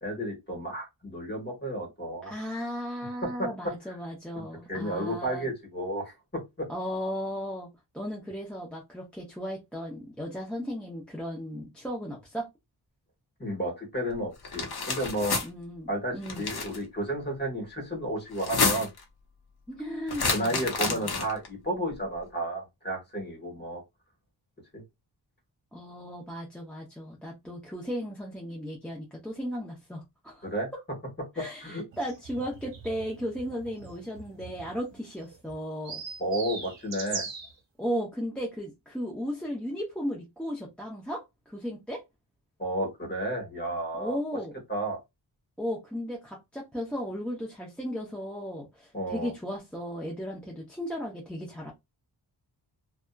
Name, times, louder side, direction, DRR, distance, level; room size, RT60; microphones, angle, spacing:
voice 1, 0.0-2.3 3.2-3.5 3.9-4.0 4.3-6.7 13.4-15.4 15.9-18.9 20.3-23.8 24.7-24.8 30.4-30.7 31.3-31.8 36.2-37.3 42.6-44.2 44.7-45.0 48.9-49.3, right 1 dB, 25° left, 1.4 m, -32 dB
voice 2, 2.2-5.5 6.7-7.7 7.9-12.5 15.4-16.5 19.7-20.5 20.8-21.2 25.7-30.5 31.4-36.0 37.8-42.0 43.9-44.6 45.6-51.7, equal, 5° left, 0.6 m, -35 dB
sound 1, 14.4-15.5 16.2-16.8 18.3-19.0 20.1-21.5, left 4 dB, 60° left, 0.8 m, -29 dB
sound 2, 31.9-37.5, right 5 dB, 85° right, 0.7 m, -41 dB
2.7 x 2.3 x 2.3 m
wide cardioid pair, 120°, 43 cm